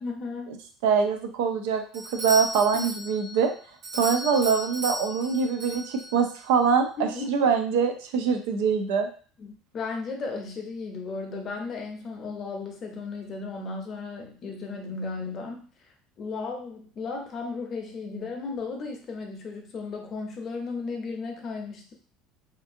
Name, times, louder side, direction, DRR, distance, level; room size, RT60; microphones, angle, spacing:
voice 1, 0.0-0.5 2.7-2.9 7.0-7.3 9.4-15.7 16.2-21.9, left 4 dB, 35° left, 2 dB, 0.6 m, -35 dB
voice 2, 0.8-3.5 3.9-9.1, right 6 dB, 85° right, 6 dB, 0.5 m, -24 dB
Doorbell, 1.9-6.4, right 1 dB, 65° right, 1.4 m, -35 dB
2.6 x 2.6 x 2.5 m, 0.41 s
cardioid pair, 145°, 0 cm